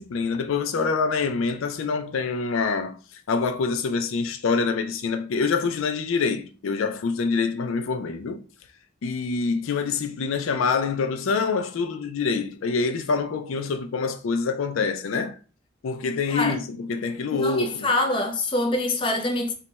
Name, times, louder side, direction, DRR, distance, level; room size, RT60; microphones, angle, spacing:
voice 1, 0.0-3.0 3.3-8.4 9.0-15.3 15.8-17.9, left 4 dB, 90° left, 0.4 m, -26 dB
voice 2, 17.3-19.5, left 2 dB, 25° left, 0.5 m, -25 dB
3.2 x 2.2 x 4.0 m
head